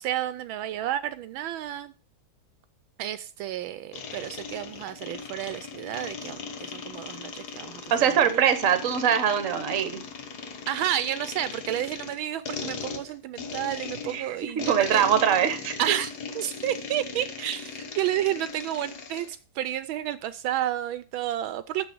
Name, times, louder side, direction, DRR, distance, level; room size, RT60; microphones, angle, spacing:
voice 1, 0.0-1.9 3.0-8.6 10.7-15.2 15.8-21.9, right 12 dB, 80° right, 1.3 m, -31 dB
sound 1, 3.9-19.3, left 5 dB, 55° left, 1.6 m, -38 dB
voice 2, 7.9-10.0 14.1-15.7, right 8 dB, 45° right, 1.3 m, -23 dB
6.9 x 6.3 x 7.6 m
omnidirectional pair, 2.2 m